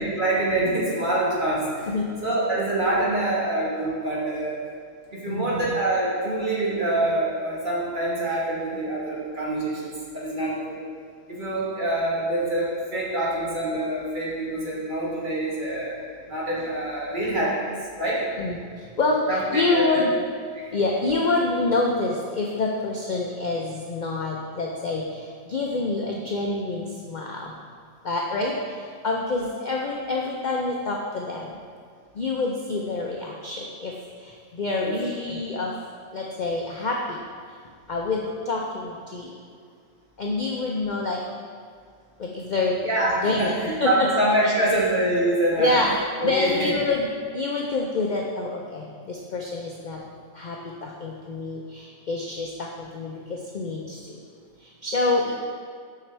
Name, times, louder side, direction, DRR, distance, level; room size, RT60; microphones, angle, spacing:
voice 1, 0.0-1.9 2.2-4.6 5.1-10.8 11.3-16.0 16.3-18.2 19.3-20.0 20.5-20.6 34.8-35.0 42.8-45.7 46.2-46.7 55.2-55.3, right 1 dB, 35° right, -6 dB, 1.6 m, -25 dB
voice 2, 5.3-5.7 18.4-20.1 20.7-27.6 28.0-31.6 32.1-35.8 36.1-37.2 37.9-39.3 40.2-41.2 42.2-42.8 43.2-43.5 43.8-44.1 45.6-45.9 46.2-47.1 47.3-50.0 50.3-54.2 54.6-55.3, left 3 dB, 65° left, -1 dB, 0.4 m, -27 dB
7.3 x 5.7 x 3.3 m, 2.1 s
omnidirectional pair, 1.5 m